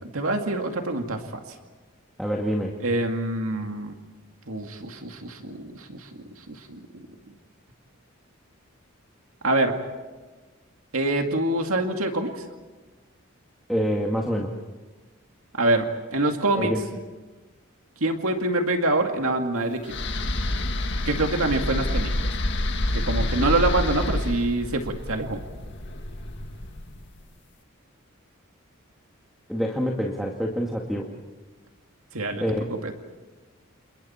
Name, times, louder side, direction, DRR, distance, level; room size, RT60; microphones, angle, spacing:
voice 1, 0.1-1.4 2.8-3.9 4.5-7.0 9.4-9.7 10.9-12.4 15.5-16.7 18.0-19.9 21.0-22.1 22.9-25.4 32.1-32.9, right 2 dB, 80° right, 4 dB, 2.2 m, -25 dB
voice 2, 2.2-2.7 13.7-14.5 16.6-16.8 23.4-23.5 29.5-31.1 32.4-32.6, equal, ahead, 0 dB, 2.1 m, -26 dB
sound 1, 19.9-27.0, left 1 dB, 55° left, 1.9 m, -28 dB
29.5 x 29.5 x 4.4 m, 1.2 s
head